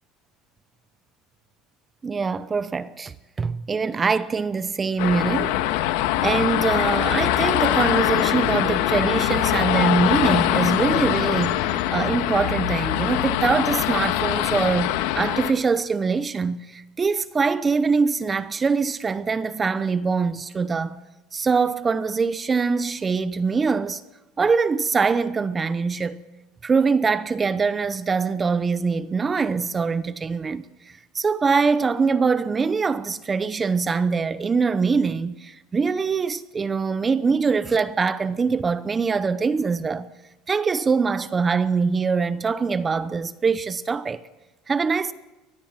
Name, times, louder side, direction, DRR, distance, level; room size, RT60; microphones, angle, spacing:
voice 1, 2.0-5.6 5.9-21.0 21.3-24.0 24.4-26.2 26.6-30.7 31.1-40.1 40.5-44.2 44.7-45.1, right 5 dB, 20° right, 0.9 m, -23 dB
sound 1, 5.0-15.5, left 13 dB, 80° left, 1.8 m, -23 dB
23.0 x 19.5 x 7.4 m
supercardioid pair, 130°, 0 cm